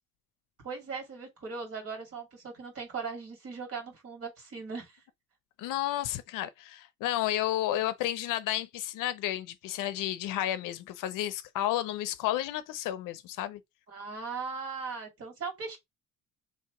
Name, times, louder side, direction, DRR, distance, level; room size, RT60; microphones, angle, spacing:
voice 1, 0.6-5.0 13.9-15.8, right 5 dB, 45° right, 2.1 m, -39 dB
voice 2, 5.6-13.6, left 13 dB, 85° left, 0.6 m, -32 dB
3.2 x 2.9 x 4.3 m
cardioid pair, 150°, 31 cm